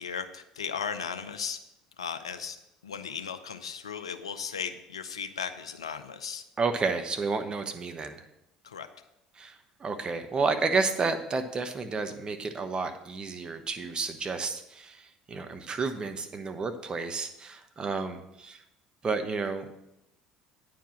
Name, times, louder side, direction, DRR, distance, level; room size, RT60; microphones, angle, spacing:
voice 1, 0.0-1.6 2.0-2.6 2.8-6.4 8.6-8.9, left 7 dB, 85° left, 9 dB, 0.6 m, -36 dB
voice 2, 6.6-8.2 9.4-18.6 19.0-19.7, right 4 dB, 30° right, 7 dB, 1.0 m, -31 dB
9.2 x 4.7 x 7.2 m, 0.87 s
figure-of-eight pair, 60°, 3 cm